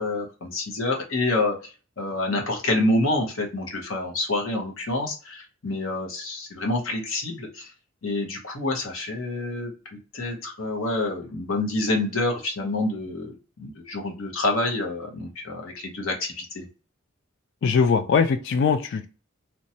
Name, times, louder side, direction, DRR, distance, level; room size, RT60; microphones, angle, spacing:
voice 1, 0.0-7.7 8.0-16.6, left 2 dB, 85° left, 2 dB, 0.9 m, -27 dB
voice 2, 17.6-19.1, left 5 dB, 60° left, 9 dB, 0.3 m, -21 dB
2.9 x 2.2 x 2.7 m, 0.34 s
head